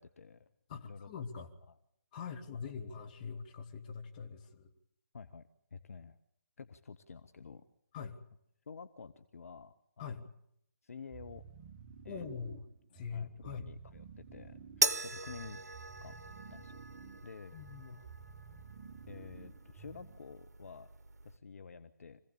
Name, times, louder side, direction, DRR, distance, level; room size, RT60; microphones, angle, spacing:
voice 1, 0.0-1.1 1.7-1.8 2.5-2.7 5.1-6.2 6.6-7.7 8.7-10.2 10.8-11.5 12.0-12.3 12.9-15.6 16.0-16.2 16.5-16.8 17.2-17.6 19.1-20.9 21.2-22.2, left 5 dB, 55° left, 11 dB, 1.0 m, -50 dB
voice 2, 0.7-1.5 2.1-4.7 7.9-8.2 10.0-10.2 12.1-12.6 12.9-13.7 17.5-18.1, left 6 dB, 30° left, 5 dB, 2.1 m, -43 dB
sound 1, 11.1-20.3, right 6 dB, 25° right, 1.0 m, -53 dB
sound 2, 14.8-21.4, right 3 dB, 70° right, 1.0 m, -39 dB
25.5 x 16.5 x 8.7 m, 0.76 s
figure-of-eight pair, 145°, 9 cm